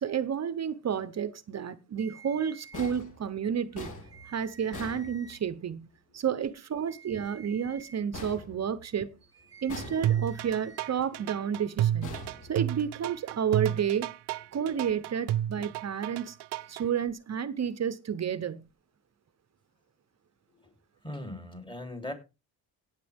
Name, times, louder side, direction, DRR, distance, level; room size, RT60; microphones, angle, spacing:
voice 1, 0.0-3.9 4.3-9.1 9.6-12.1 12.5-14.1 14.5-16.4 16.7-18.7, right 8 dB, 40° right, 0.9 m, -31 dB
sound 1, 2.0-2.9 3.7-5.4 6.7-8.0 9.3-10.9, right 4 dB, 10° right, 1.1 m, -51 dB
sound 2, 2.7-5.8 8.1-9.2 9.7-10.5 12.0-13.1, left 1 dB, 45° left, 3.4 m, -44 dB
voice 2, 7.2-7.6 20.5-20.7 21.0-22.1, left 1 dB, 10° left, 3.4 m, -40 dB
sound 3, 10.0-16.8, right 12 dB, 70° right, 0.7 m, -31 dB
17.5 x 8.2 x 3.6 m
cardioid pair, 125°, 41 cm